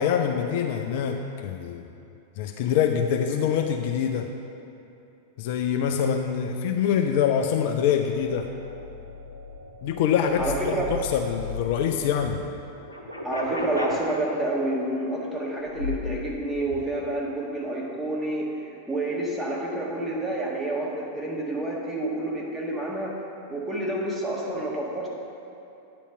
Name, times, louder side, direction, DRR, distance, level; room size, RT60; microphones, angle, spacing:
voice 1, 0.0-1.9 2.4-4.3 5.4-8.5 9.8-12.4, left 8 dB, 50° left, 4 dB, 0.4 m, -25 dB
sound 1, 8.2-12.4 12.8-14.0 15.7-16.3 16.6-16.8, left 3 dB, 85° left, 0.9 m, -35 dB
voice 2, 10.4-10.9 13.2-23.2 23.5-25.1, right 1 dB, 5° right, -4 dB, 1.5 m, -29 dB
9.4 x 4.3 x 5.8 m, 2.7 s
figure-of-eight pair, 90°, 0 cm